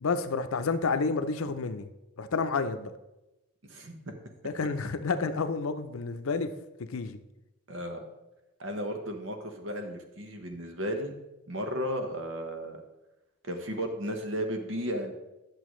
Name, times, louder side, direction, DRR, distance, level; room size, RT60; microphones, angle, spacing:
voice 1, 0.0-1.9 2.2-2.9 4.4-6.5 6.8-7.2, left 4 dB, 90° left, 10 dB, 0.6 m, -30 dB
voice 2, 3.6-4.0 7.7-8.1 8.6-11.2 11.5-12.8 13.4-15.1, equal, 65° right, 5 dB, 1.1 m, -34 dB
10.0 x 6.7 x 3.1 m, 0.97 s
head